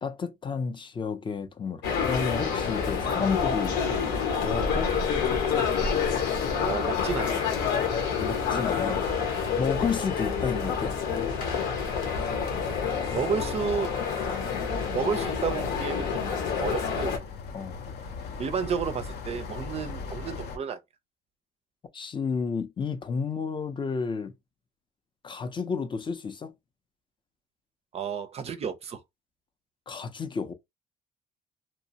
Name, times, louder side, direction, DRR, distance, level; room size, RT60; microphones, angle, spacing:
voice 1, 0.0-3.8 4.4-4.9 8.2-9.1 9.6-11.0 17.5-17.8 21.9-24.3 25.2-26.5 29.9-30.5, left 5 dB, 30° left, 0.5 m, -31 dB
sound 1, 1.8-17.2, left 6 dB, 90° left, 1.1 m, -28 dB
voice 2, 6.5-7.5 13.1-14.0 14.9-17.2 18.4-20.8 27.9-29.0, right 6 dB, 40° right, 0.4 m, -31 dB
sound 2, 14.9-20.6, left 4 dB, 70° left, 0.6 m, -40 dB
2.7 x 2.1 x 2.7 m
cardioid pair, 110°, 17 cm